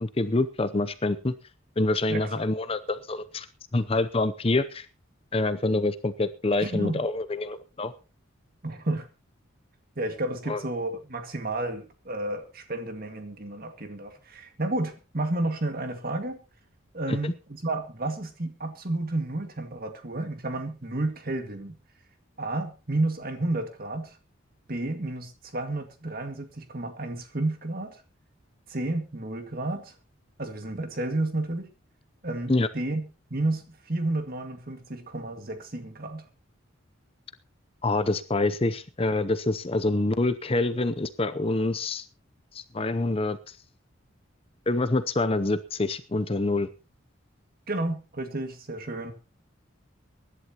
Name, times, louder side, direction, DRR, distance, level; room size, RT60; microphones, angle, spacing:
voice 1, 0.0-1.3 1.8-3.5 3.7-4.9 5.3-7.9 10.5-10.6 17.1-17.3 32.5-32.7 37.8-42.1 42.5-43.6 44.7-46.7, left 2 dB, 25° left, 11 dB, 0.6 m, -26 dB
voice 2, 6.6-7.0 8.6-9.1 10.0-16.4 16.9-21.8 22.4-24.2 24.7-28.0 28.7-29.9 30.4-31.7 32.2-33.0 33.3-36.3 47.7-49.1, right 2 dB, 45° right, 6 dB, 2.0 m, -31 dB
23.5 x 11.5 x 2.9 m, 0.32 s
head